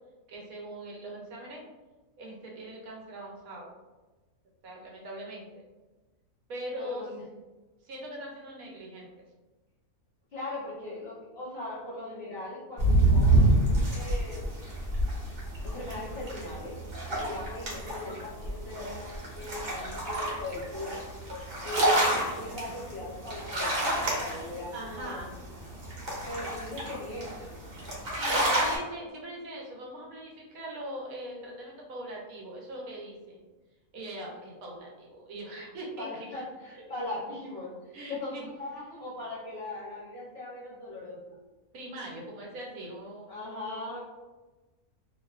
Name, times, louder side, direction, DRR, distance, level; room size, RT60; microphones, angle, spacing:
voice 1, 0.3-1.6 2.2-3.7 4.6-5.7 6.5-7.1 7.8-9.2 24.7-25.3 28.0-33.4 33.9-36.3 37.9-38.5 41.7-43.4, right 1 dB, 75° right, -2 dB, 1.0 m, -41 dB
voice 2, 6.8-7.2 10.3-14.6 15.6-16.8 17.2-21.0 21.6-25.4 26.3-27.5 36.0-41.2 43.3-44.0, left 1 dB, 55° left, -7 dB, 0.8 m, -39 dB
sound 1, 12.8-28.8, right 1 dB, 50° right, 0.8 m, -28 dB
2.5 x 2.3 x 2.2 m, 1.2 s
omnidirectional pair, 1.6 m